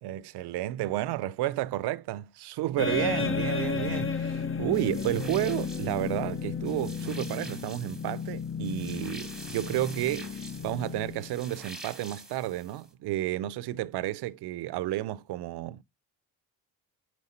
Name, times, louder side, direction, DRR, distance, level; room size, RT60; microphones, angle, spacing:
voice 1, 0.0-15.8, right 15 dB, 80° right, 0.6 m, -31 dB
sound 1, 2.8-11.7, left 5 dB, 35° left, 0.6 m, -33 dB
sound 2, 4.7-12.9, right 2 dB, ahead, 1.1 m, -46 dB
5.1 x 4.7 x 4.2 m
cardioid pair, 85°, 39 cm